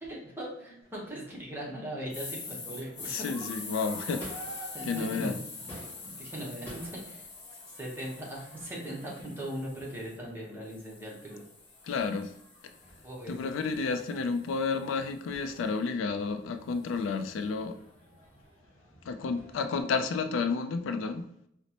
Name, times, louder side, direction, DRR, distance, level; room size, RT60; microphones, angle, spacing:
voice 1, 0.0-3.1 4.0-4.2 4.7-5.4 6.0-7.2 7.7-11.4 13.0-13.4, right 1 dB, 10° right, 0.9 m, -39 dB
Crowd / Fireworks, 0.8-19.8, equal, 10° left, 1.3 m, -52 dB
sound 1, 2.1-10.2 10.7-14.9, left 4 dB, 65° left, 0.8 m, -45 dB
voice 2, 3.1-4.3 4.9-5.4 11.8-12.3 13.3-17.8 19.0-21.3, left 4 dB, 85° left, 0.3 m, -31 dB
4.1 x 2.1 x 2.8 m
head